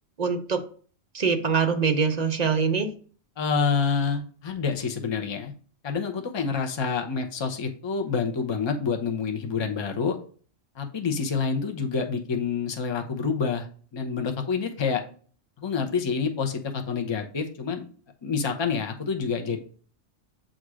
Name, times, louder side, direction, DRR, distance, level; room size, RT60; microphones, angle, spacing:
voice 1, 0.2-0.6 1.1-2.9, right 5 dB, 50° right, 6 dB, 0.5 m, -23 dB
voice 2, 3.4-5.5 5.8-10.2 10.8-13.7 13.9-15.0 15.6-17.8 18.2-19.6, left 5 dB, 30° left, 5 dB, 0.6 m, -27 dB
7.4 x 2.6 x 4.8 m, 0.43 s
omnidirectional pair, 1.3 m